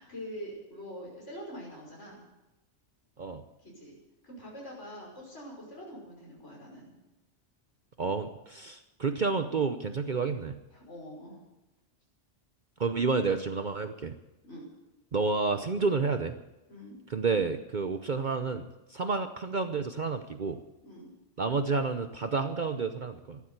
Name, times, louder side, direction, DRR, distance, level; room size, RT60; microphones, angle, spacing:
voice 1, 0.0-2.2 3.6-3.9 4.2-6.9 10.7-11.4 14.4-14.7 16.7-17.0 20.8-21.1, equal, 70° left, -3 dB, 6.1 m, -44 dB
voice 2, 8.0-10.6 12.8-14.1 15.1-16.4 17.1-20.6 21.4-23.4, right 4 dB, 45° right, 8 dB, 0.9 m, -30 dB
14.5 x 12.0 x 8.0 m, 0.97 s
omnidirectional pair, 1.2 m